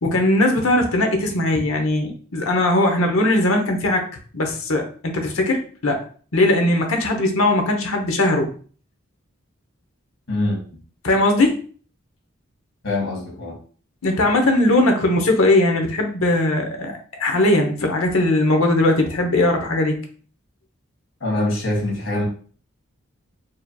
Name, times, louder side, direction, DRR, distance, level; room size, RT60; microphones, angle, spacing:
voice 1, 0.0-4.1 4.3-6.0 6.3-8.5 11.0-11.5 14.0-19.9, left 1 dB, 80° left, 4 dB, 0.9 m, -19 dB
voice 2, 10.3-10.6 12.8-13.6 21.2-22.2, left 1 dB, 60° left, -2 dB, 1.8 m, -23 dB
4.8 x 2.9 x 2.3 m, 0.42 s
head